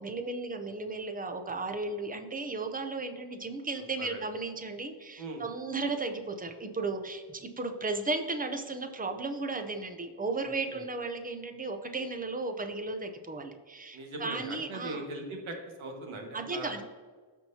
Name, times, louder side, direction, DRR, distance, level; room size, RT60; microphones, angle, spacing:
voice 1, 0.0-15.0 16.3-16.8, right 3 dB, 20° right, 6 dB, 0.6 m, -35 dB
voice 2, 10.4-10.9 13.9-16.8, right 2 dB, 75° right, 3 dB, 1.7 m, -40 dB
13.5 x 4.5 x 2.8 m, 1.5 s
wide cardioid pair, 180°, 49 cm